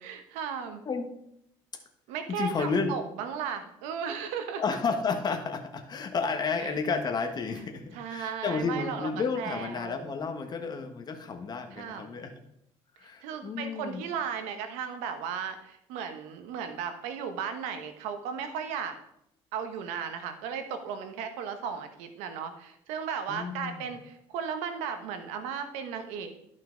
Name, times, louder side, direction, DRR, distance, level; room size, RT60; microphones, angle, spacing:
voice 1, 0.0-0.8 2.1-4.6 6.6-6.8 7.9-9.1 9.4-10.1 11.7-12.1 13.0-18.9 19.5-26.4, right 7 dB, 90° right, 7 dB, 1.2 m, -35 dB
voice 2, 2.3-2.9 4.6-12.3 13.0-14.0 23.3-23.9, left 4 dB, 35° left, 6 dB, 1.4 m, -31 dB
11.5 x 5.6 x 3.9 m, 0.76 s
cardioid pair, 105°, 12 cm